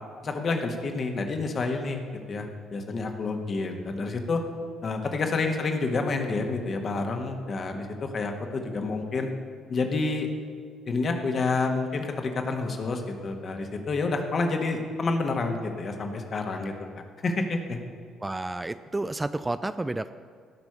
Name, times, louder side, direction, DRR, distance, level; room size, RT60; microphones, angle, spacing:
voice 1, 0.2-4.4 4.8-9.3 9.7-10.3 10.9-16.7 17.2-17.8, left 3 dB, 40° left, 4 dB, 1.6 m, -29 dB
voice 2, 18.2-20.1, right 2 dB, 15° right, 12 dB, 0.4 m, -30 dB
16.5 x 6.1 x 7.0 m, 2.1 s
figure-of-eight pair, 45°, 0 cm